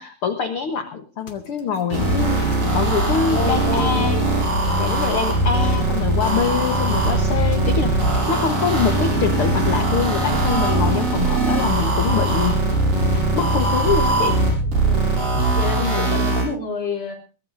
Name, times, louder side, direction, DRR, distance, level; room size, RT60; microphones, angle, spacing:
voice 1, 0.0-2.4 2.7-4.2 4.8-8.0 8.3-12.6 13.3-14.4 15.8-16.2, left 6 dB, 60° left, 7 dB, 1.5 m, -24 dB
sound 1, 1.3-10.9 11.4-11.6 11.9-12.3 12.7-15.9, equal, 40° left, 2.1 m, -29 dB
voice 2, 1.9-2.3 3.3-4.3 4.6-5.0 8.7-8.9 14.8-15.1 15.5-17.1, left 2 dB, 15° left, 0 dB, 4.1 m, -29 dB
sound 2, 1.9-16.4, right 2 dB, 70° right, 8.4 m, -21 dB
sound 3, 6.4-15.8, right 3 dB, 85° right, 3.3 m, -29 dB
22.5 x 17.5 x 2.6 m, 0.35 s
omnidirectional pair, 4.0 m